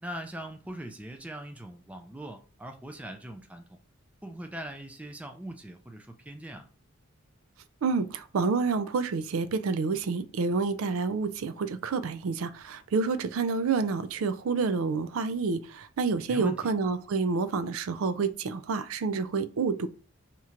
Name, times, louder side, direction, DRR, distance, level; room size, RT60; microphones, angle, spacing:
voice 1, 0.0-3.8 4.2-6.7 16.3-16.7, right 1 dB, 5° right, 0.4 m, -41 dB
voice 2, 7.8-19.9, right 4 dB, 85° right, 0.4 m, -28 dB
2.9 x 2.4 x 4.3 m
head